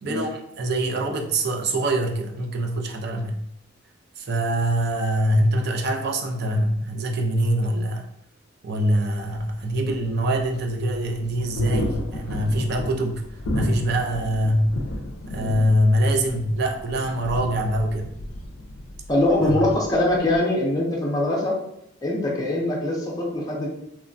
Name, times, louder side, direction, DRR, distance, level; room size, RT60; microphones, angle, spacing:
voice 1, 0.0-3.4 4.2-8.0 8.6-13.2 13.5-14.7 15.3-18.1 19.4-19.6, right 1 dB, 55° right, 2 dB, 0.4 m, -24 dB
sound 1, 9.2-20.4, left 1 dB, 90° left, 0.4 m, -34 dB
voice 2, 19.1-21.6 22.0-23.7, left 1 dB, 20° left, -3 dB, 0.5 m, -23 dB
2.9 x 2.1 x 2.5 m, 0.77 s
head